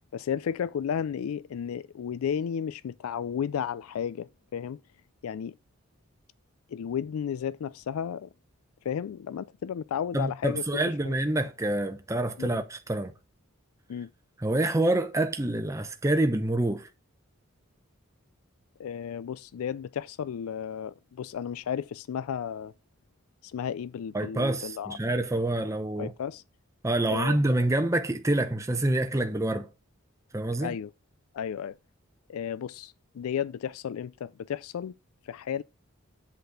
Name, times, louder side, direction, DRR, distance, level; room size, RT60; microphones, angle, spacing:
voice 1, 0.1-4.8 5.2-5.6 6.7-8.3 8.8-11.2 12.4-12.5 13.9-14.1 18.8-22.7 23.4-25.0 26.0-26.4 27.1-27.4 30.6-30.9 31.3-31.8 32.3-35.0 35.2-35.6, left 8 dB, 80° left, 0.3 m, -33 dB
voice 2, 10.1-13.1 14.4-16.9 24.1-26.1 26.8-29.7 30.3-30.7, right 1 dB, 15° right, 0.6 m, -27 dB
8.0 x 4.1 x 6.4 m
head